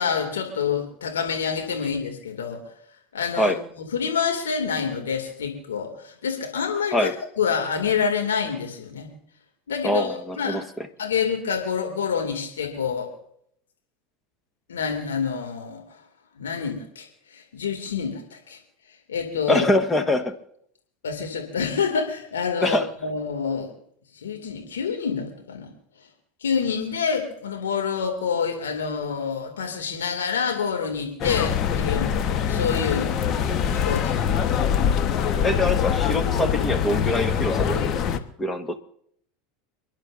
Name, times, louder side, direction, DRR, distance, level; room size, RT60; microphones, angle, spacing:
voice 1, 0.0-2.6 3.1-7.1 7.4-9.1 9.7-10.6 11.0-13.1 14.7-16.0 16.4-18.6 19.1-19.7 21.0-23.7 24.1-25.7 26.4-33.2 33.8-34.2, left 6 dB, 85° left, 3 dB, 2.4 m, -27 dB
voice 2, 9.8-10.9 19.5-20.3 22.6-22.9 33.4-33.9 35.4-37.9 38.4-38.8, left 1 dB, 15° left, 8 dB, 1.4 m, -24 dB
sound 1, 31.2-38.2, left 8 dB, 45° left, 1.2 m, -23 dB
29.5 x 11.0 x 2.6 m, 0.68 s
hypercardioid pair, 85°, 0 cm